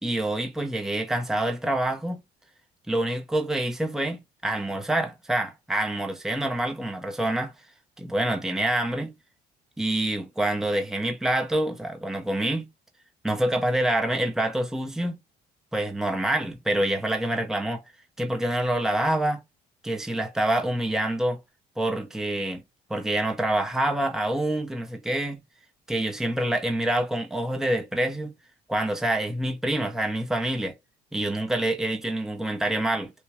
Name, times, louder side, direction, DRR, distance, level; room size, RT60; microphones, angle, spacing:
voice 1, 0.0-2.2 2.9-7.5 8.0-9.1 9.8-12.7 13.2-15.2 15.7-17.8 18.2-19.4 19.8-21.4 21.8-22.6 22.9-25.4 25.9-28.3 28.7-30.7 31.1-33.1, right 1 dB, 5° right, 0.9 m, -26 dB
6.3 x 2.3 x 3.1 m
cardioid pair, 110°, 17 cm